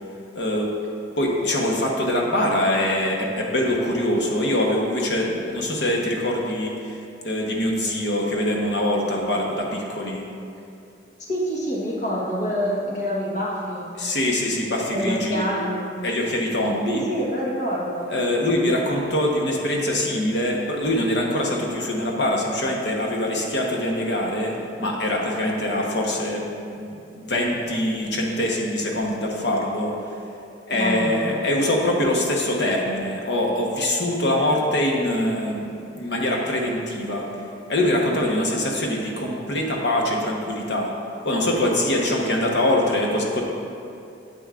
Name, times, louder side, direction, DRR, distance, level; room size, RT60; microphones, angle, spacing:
voice 1, 0.3-0.7 1.2-10.2 14.0-15.5 16.0-17.0 18.1-24.5 24.8-26.4 26.8-29.9 30.7-37.2 37.7-40.9 41.2-43.4, left 1 dB, 70° left, -1 dB, 1.1 m, -23 dB
voice 2, 11.3-13.8 14.9-15.8 16.9-18.1 30.7-31.3, equal, 40° left, -5 dB, 1.2 m, -26 dB
9.0 x 8.1 x 2.5 m, 2.6 s
head